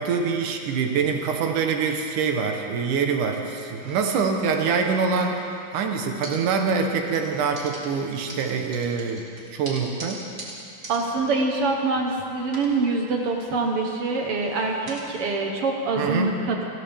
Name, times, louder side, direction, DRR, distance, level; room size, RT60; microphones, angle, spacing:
voice 1, 0.0-5.4 5.7-9.2 9.5-10.2 16.0-16.3, right 5 dB, 85° right, 3 dB, 2.7 m, -25 dB
sound 1, 3.8-5.8 6.2-6.9 7.1-12.1 12.5-15.2, right 1 dB, 30° right, 2.0 m, -43 dB
voice 2, 10.9-16.7, right 3 dB, 60° right, 1 dB, 1.8 m, -25 dB
28.0 x 13.0 x 3.5 m, 2.6 s
omnidirectional pair, 3.5 m